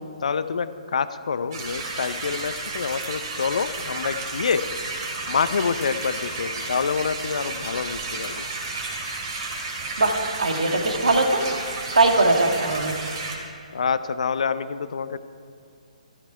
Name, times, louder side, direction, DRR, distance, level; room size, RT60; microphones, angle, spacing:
voice 1, 0.2-4.6 5.3-8.4 13.7-15.2, left 6 dB, 60° left, 13 dB, 0.7 m, -27 dB
sound 1, 1.5-13.4, right 3 dB, 40° right, 2.9 m, -32 dB
voice 2, 10.4-11.4 12.0-13.0, right 2 dB, 70° right, 4 dB, 1.9 m, -20 dB
14.0 x 13.5 x 4.8 m, 2.4 s
figure-of-eight pair, 130°, 4 cm